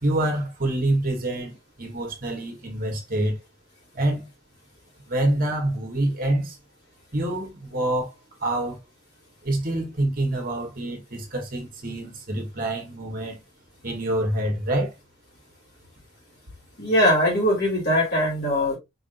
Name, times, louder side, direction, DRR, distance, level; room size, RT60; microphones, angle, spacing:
voice 1, 0.0-3.4 3.9-4.3 5.1-6.6 7.1-8.1 8.4-8.8 9.4-13.4 13.8-14.9, right 1 dB, 45° right, 1.5 m, -26 dB
voice 2, 16.8-18.8, left 1 dB, 50° left, 2.9 m, -21 dB
4.8 x 3.5 x 2.6 m
head